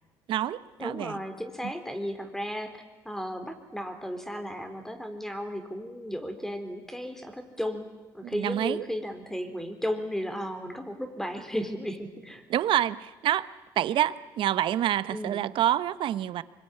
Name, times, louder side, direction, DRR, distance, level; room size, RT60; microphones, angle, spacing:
voice 1, 0.3-1.2 1.6-1.7 8.2-8.8 12.5-13.5 13.8-16.4, right 11 dB, 65° right, 15 dB, 1.0 m, -27 dB
voice 2, 0.8-2.8 3.1-7.9 8.1-12.5 15.1-15.4, equal, 5° left, 8 dB, 3.9 m, -34 dB
24.5 x 22.5 x 10.0 m, 1.2 s
supercardioid pair, 90°, 9 cm